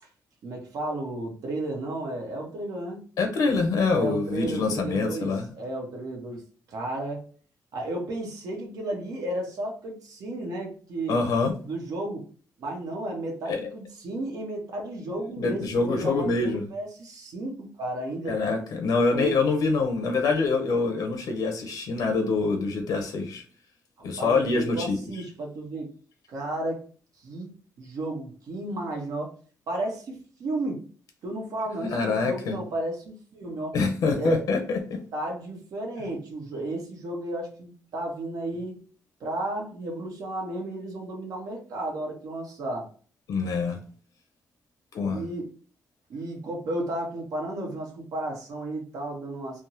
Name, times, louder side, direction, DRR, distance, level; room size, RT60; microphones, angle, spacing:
voice 1, 0.4-3.0 3.9-5.3 5.5-6.4 6.7-7.2 7.7-11.2 11.6-12.3 12.6-18.4 19.1-19.4 24.2-25.9 26.3-26.8 27.2-27.5 27.8-29.3 29.7-30.8 31.2-33.8 34.1-34.4 35.1-38.8 39.2-42.9 45.0-45.5 46.1-49.6, right 1 dB, 70° right, 0 dB, 1.1 m, -33 dB
voice 2, 3.2-5.5 11.1-11.5 13.5-13.7 15.4-16.7 18.3-23.4 24.0-25.0 31.8-32.6 33.7-35.0 43.3-43.8 44.9-45.2, left 4 dB, 75° left, 5 dB, 0.7 m, -25 dB
3.4 x 2.0 x 2.8 m, 0.40 s
cardioid pair, 120°, 6 cm